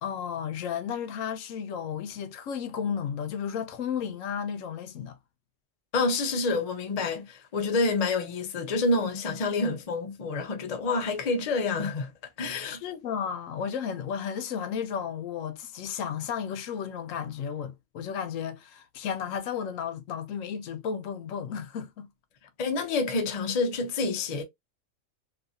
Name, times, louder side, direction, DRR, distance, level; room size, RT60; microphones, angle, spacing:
voice 1, 0.0-5.2 12.6-22.1, left 7 dB, 75° left, 0.9 m, -33 dB
voice 2, 5.9-12.1 12.4-12.8 22.6-24.4, left 3 dB, 55° left, 0.4 m, -28 dB
2.7 x 2.5 x 2.6 m
omnidirectional pair, 1.4 m